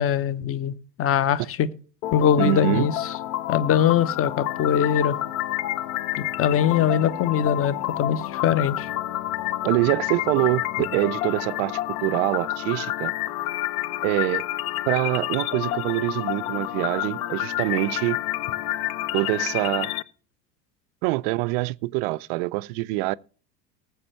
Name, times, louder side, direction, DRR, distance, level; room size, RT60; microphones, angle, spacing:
voice 1, 0.0-1.7 2.1-3.1 3.5-5.2 6.2-8.9, left 8 dB, 30° left, 0.9 m, -22 dB
sound 1, 2.0-20.0, left 14 dB, 60° left, 0.8 m, -29 dB
voice 2, 2.4-2.9 9.6-13.1 14.0-14.4 14.9-18.2 19.1-19.9 21.0-23.2, right 20 dB, 40° right, 0.5 m, -25 dB
19.5 x 8.0 x 3.2 m
figure-of-eight pair, 75°, 49 cm